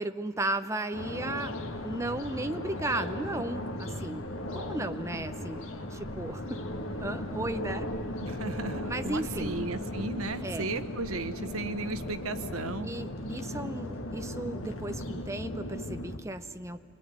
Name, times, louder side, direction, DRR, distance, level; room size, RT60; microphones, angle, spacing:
voice 1, 0.0-1.6 1.8-4.2 4.5-5.6 5.9-6.6 7.0-7.9 8.9-9.6 10.4-10.7 12.8-16.8, right 2 dB, 15° right, 9 dB, 0.8 m, -35 dB
sound 1, 0.9-16.2, left 1 dB, 70° left, 1.7 m, -37 dB
voice 2, 8.2-12.9, right 2 dB, 90° right, 10 dB, 1.2 m, -35 dB
27.5 x 21.5 x 9.5 m, 2.7 s
head